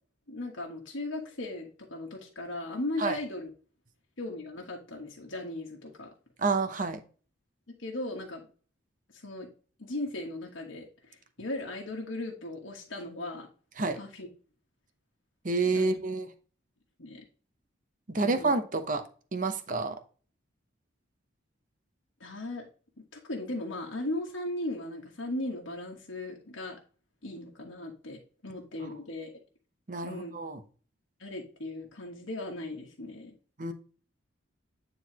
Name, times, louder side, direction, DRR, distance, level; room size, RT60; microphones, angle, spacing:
voice 1, 0.3-3.5 4.2-6.1 7.8-8.5 9.1-9.5 9.8-13.5 13.9-14.3 15.7-15.9 17.0-17.2 18.1-18.6 22.2-22.7 23.0-26.8 27.2-29.3 30.0-30.3 31.2-33.3, left 2 dB, 75° left, -1 dB, 1.4 m, -37 dB
voice 2, 6.4-7.0 13.8-14.0 15.4-16.3 18.1-19.0 19.3-20.0 28.8-28.9 29.9-30.6 33.6-33.7, right 3 dB, 40° right, 8 dB, 0.8 m, -29 dB
9.4 x 3.9 x 2.9 m, 0.39 s
head